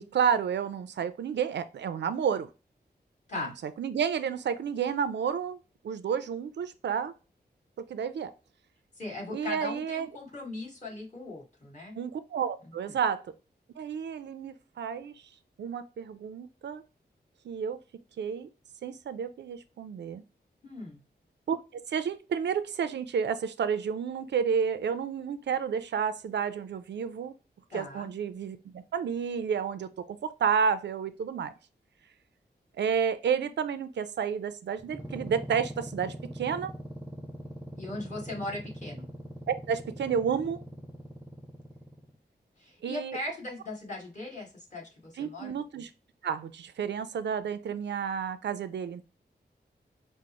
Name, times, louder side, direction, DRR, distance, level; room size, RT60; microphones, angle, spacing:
voice 1, 0.0-2.5 3.8-5.6 5.8-7.1 7.8-8.3 9.3-10.1 12.0-13.2 13.8-15.1 15.6-16.8 17.4-17.8 18.2-18.5 18.8-20.2 21.5-21.6 21.9-27.3 27.7-31.5 32.8-36.7 39.5-40.6 42.8-43.2 45.2-45.9 46.2-49.0, right 7 dB, 85° right, 13 dB, 0.4 m, -30 dB
voice 2, 9.0-12.0 12.6-13.0 20.6-21.0 27.7-28.1 37.8-39.1 42.6-45.6, left 2 dB, 45° left, -3 dB, 1.8 m, -39 dB
sound 1, 34.8-42.1, equal, 10° right, 0.6 m, -42 dB
5.1 x 2.0 x 2.9 m, 0.31 s
wide cardioid pair, 115°, 18 cm